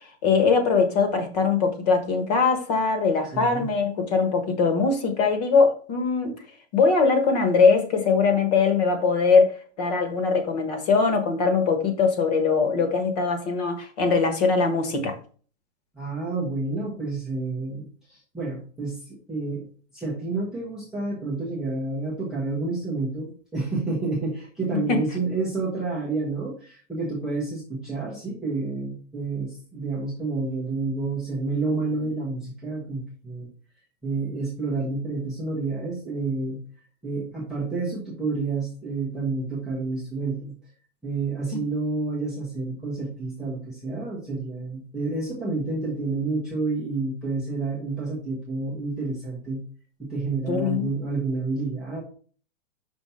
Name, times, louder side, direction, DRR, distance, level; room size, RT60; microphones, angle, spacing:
voice 1, 0.2-6.3 6.7-15.2 24.7-25.1 41.5-41.6 50.5-50.9, left 4 dB, 35° left, 7 dB, 1.3 m, -21 dB
voice 2, 3.3-3.7 15.9-19.7 19.9-33.5 34.0-36.6 37.0-40.5 41.0-49.6 50.0-52.0, right 3 dB, ahead, -6 dB, 0.7 m, -29 dB
5.6 x 4.1 x 5.5 m, 0.41 s
hypercardioid pair, 170°, 36 cm